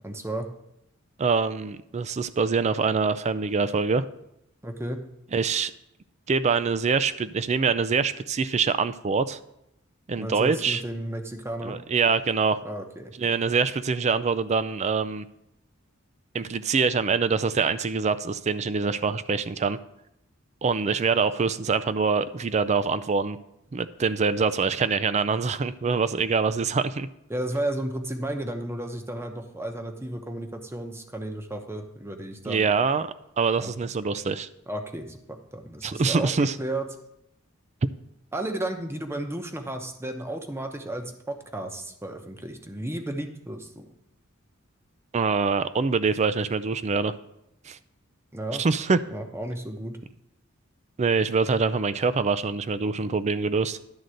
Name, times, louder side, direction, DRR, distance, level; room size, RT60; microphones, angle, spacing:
voice 1, 0.0-0.5 4.6-5.0 10.2-11.8 12.6-13.1 27.3-32.7 33.6-33.7 34.7-36.9 38.3-43.9 48.3-48.6 49.1-50.0, right 1 dB, 10° right, 5 dB, 0.9 m, -33 dB
voice 2, 1.2-4.1 5.3-5.7 6.3-9.4 10.1-10.8 11.6-12.6 13.2-15.3 16.3-19.8 20.6-23.4 23.7-27.1 32.5-33.1 33.4-34.5 35.8-36.5 45.1-47.1 47.7-47.8 48.6-49.0 51.0-53.8, right 5 dB, 35° right, 13 dB, 0.4 m, -24 dB
11.0 x 3.9 x 7.7 m, 0.82 s
head